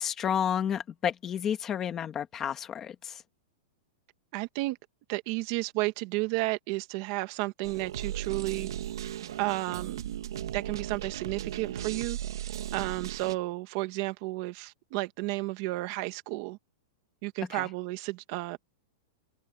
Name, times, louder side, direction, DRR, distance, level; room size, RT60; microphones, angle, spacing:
voice 1, 0.0-3.2 17.5-17.6, left 8 dB, 15° left, 1.6 m, -31 dB
voice 2, 4.3-4.8 5.1-8.7 9.4-10.0 10.5-12.2 12.7-16.6 17.2-18.6, right 21 dB, 35° right, 1.5 m, -32 dB
sound 1, 7.6-13.4, right 11 dB, 85° right, 1.9 m, -36 dB
supercardioid pair, 180°, 2 cm